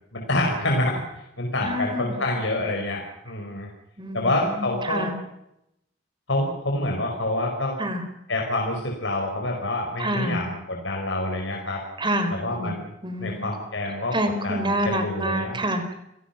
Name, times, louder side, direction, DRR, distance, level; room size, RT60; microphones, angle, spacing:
voice 1, 0.1-1.0 1.4-3.7 4.1-5.1 6.3-7.8 8.3-11.8 12.3-12.9 13.2-14.2 14.4-15.6, left 1 dB, 75° left, 0 dB, 5.4 m, -27 dB
voice 2, 1.6-2.3 4.0-5.1 7.8-8.0 10.0-10.5 12.0-13.5 14.1-15.9, right 1 dB, 25° right, 8 dB, 4.4 m, -28 dB
30.0 x 19.0 x 6.0 m, 0.81 s
head